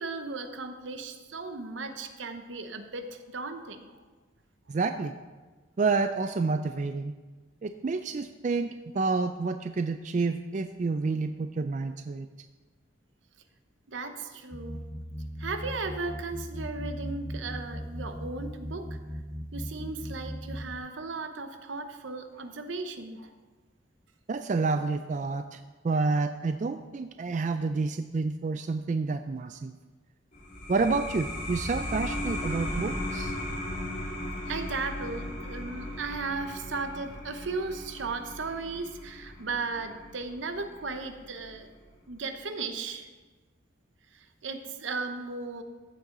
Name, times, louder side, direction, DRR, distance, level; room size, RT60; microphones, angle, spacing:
voice 1, 0.0-4.0 13.9-14.9 15.4-19.0 19.5-23.3 34.5-41.7 42.1-43.1 44.1-45.6, right 3 dB, 80° right, 8 dB, 0.9 m, -36 dB
voice 2, 4.7-5.1 5.8-7.1 7.6-12.3 24.3-29.7 30.7-33.3, right 4 dB, 40° right, 8 dB, 0.3 m, -29 dB
sound 1, 14.5-20.8, equal, 10° left, 0.5 m, -38 dB
sound 2, 30.3-41.5, left 1 dB, 40° left, 3.4 m, -37 dB
14.0 x 7.6 x 3.9 m, 1.3 s
head